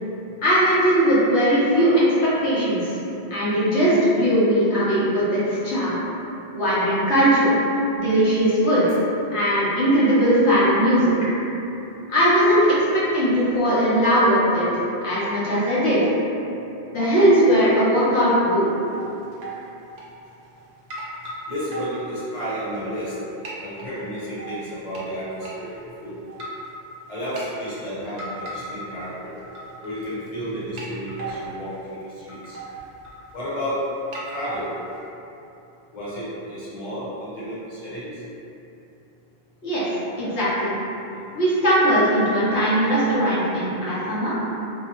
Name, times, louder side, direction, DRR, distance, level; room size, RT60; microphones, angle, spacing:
voice 1, 0.4-3.0 3.3-6.0 6.5-7.5 8.0-8.9 9.3-11.1 12.1-14.7 15.0-16.0 16.9-18.7 39.6-39.9 40.2-40.7 41.3-44.4, equal, 80° left, -10 dB, 1.0 m, -19 dB
sound 1, 18.6-19.1 19.3-19.6 20.0-20.6 20.9-23.2 23.4-23.9 24.4-25.0 25.4-25.5 26.3-26.7 27.1-27.4 28.2-29.0 29.3-30.0 30.3-30.4 30.8-31.6 32.0-32.1 32.3-33.6 34.1-35.0, right 3 dB, 60° right, 0.7 m, -36 dB
voice 2, 21.5-23.1 23.6-26.1 27.1-29.3 29.8-32.6 33.3-33.8 34.3-34.7 35.9-38.1, equal, 40° left, -10 dB, 0.8 m, -32 dB
2.7 x 2.0 x 2.8 m, 2.9 s
omnidirectional pair, 1.1 m